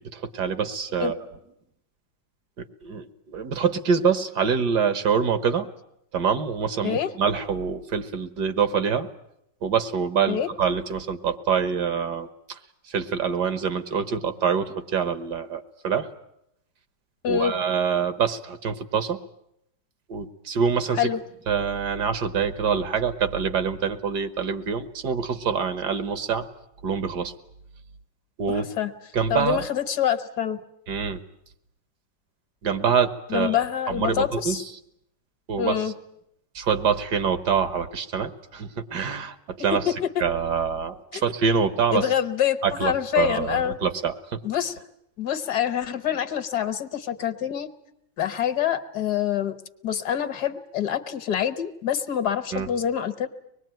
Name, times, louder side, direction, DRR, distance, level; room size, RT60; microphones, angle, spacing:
voice 1, 0.1-1.2 2.6-5.7 6.1-9.1 9.6-12.6 12.9-16.1 17.3-19.2 20.1-21.1 21.5-26.5 26.8-27.3 28.4-28.7 29.1-29.6 30.9-31.2 32.6-34.7 35.5-35.8 36.6-39.9 40.2-42.1 42.6-44.4 52.5-52.7, right 6 dB, 70° right, 11 dB, 1.9 m, -25 dB
voice 2, 28.5-28.9 29.3-30.6 33.3-34.6 35.6-35.9 40.2-40.3 41.1-41.3 41.9-43.8 44.4-44.8 45.2-47.7 48.2-49.6 49.8-53.3, left 9 dB, 65° left, 11 dB, 1.7 m, -26 dB
24.5 x 20.5 x 9.1 m, 0.78 s
omnidirectional pair, 1.8 m